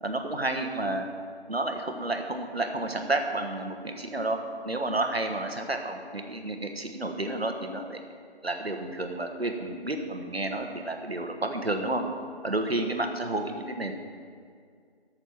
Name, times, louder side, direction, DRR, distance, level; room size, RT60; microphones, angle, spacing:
voice 1, 0.0-1.1 1.5-8.0 8.4-12.0 12.4-13.9, right 2 dB, 70° right, 4 dB, 1.4 m, -31 dB
13.5 x 6.7 x 6.0 m, 2.1 s
figure-of-eight pair, 175°, 32 cm